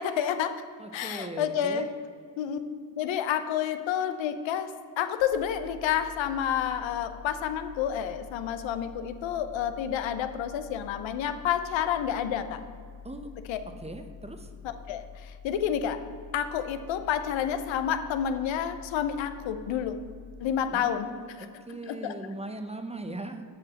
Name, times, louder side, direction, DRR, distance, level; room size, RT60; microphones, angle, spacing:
voice 1, 0.0-0.6 0.9-1.9 2.4-2.6 2.9-12.6 13.5-13.6 14.6-16.0 16.3-20.0 20.4-21.1 21.4-21.5 21.9-22.1, left 9 dB, 85° left, 10 dB, 0.8 m, -29 dB
voice 2, 0.8-1.9 13.0-13.3 13.8-14.5 20.7-23.4, right 2 dB, 15° right, 7 dB, 0.7 m, -39 dB
sound 1, 5.2-21.0, left 6 dB, 50° right, 2.4 m, -47 dB
7.9 x 5.7 x 7.7 m, 2.2 s
cardioid pair, 100°, 44 cm